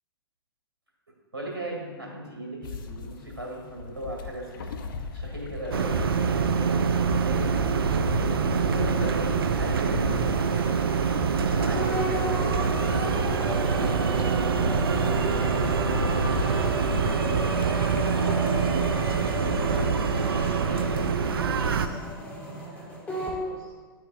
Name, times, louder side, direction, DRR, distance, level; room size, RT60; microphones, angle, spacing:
voice 1, 1.3-4.7 5.1-6.2 7.1-7.4 8.5-10.8 11.5-13.4, right 1 dB, 85° right, -1 dB, 2.0 m, -37 dB
sound 1, 2.6-19.9, left 4 dB, 55° left, 0.6 m, -35 dB
sound 2, 5.7-21.9, right 6 dB, 70° right, 0.5 m, -25 dB
voice 2, 9.2-9.6 16.8-23.0 23.4-23.7, right 1 dB, 20° right, -3 dB, 1.7 m, -46 dB
sound 3, 11.8-23.4, equal, 10° left, 1.5 m, -34 dB
10.0 x 7.3 x 2.3 m, 1.4 s
figure-of-eight pair, 110°, 13 cm